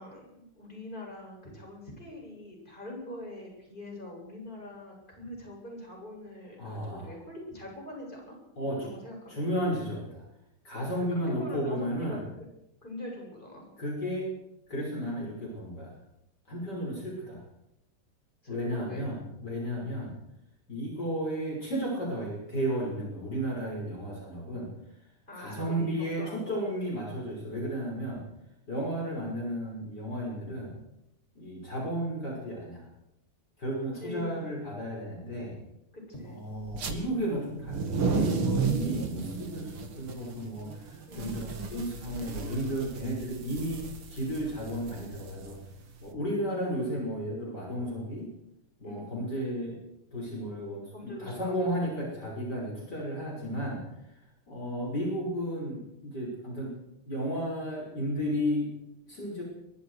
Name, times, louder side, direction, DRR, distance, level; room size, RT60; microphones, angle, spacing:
voice 1, 0.0-8.4 8.8-9.4 11.1-12.2 12.8-13.6 18.4-19.1 25.3-27.3 33.9-34.4 35.9-36.4 38.7-39.1 41.1-41.5 43.4-43.6 48.8-49.2 50.9-51.7, left 1 dB, 20° left, -1 dB, 8.2 m, -43 dB
voice 2, 6.6-7.1 8.6-8.9 9.3-10.2 10.6-12.3 13.8-14.3 14.7-16.0 16.5-17.4 18.5-20.2 20.7-24.7 25.3-28.2 28.7-30.8 31.3-32.9 33.6-35.6 36.3-45.6 46.0-48.3 48.8-49.8 50.1-54.0 54.5-56.8 57.1-58.7 59.1-59.4, equal, 50° left, -2 dB, 6.6 m, -33 dB
sound 1, 36.7-36.9 37.5-46.0, right 4 dB, 80° right, 3.1 m, -33 dB
23.0 x 23.0 x 5.0 m, 0.86 s
omnidirectional pair, 2.3 m